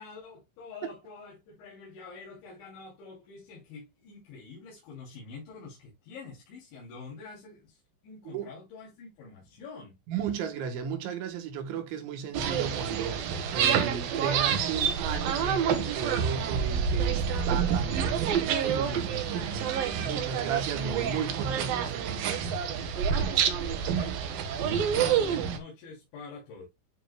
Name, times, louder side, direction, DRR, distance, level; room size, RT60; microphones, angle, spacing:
voice 1, 0.0-10.0 23.6-26.7, left 4 dB, 90° left, 5.1 m, -46 dB
voice 2, 10.1-22.5, right 7 dB, 90° right, 3.7 m, -35 dB
sound 1, 12.3-25.6, right 7 dB, 65° right, 2.6 m, -28 dB
12.0 x 5.2 x 2.2 m
omnidirectional pair, 5.1 m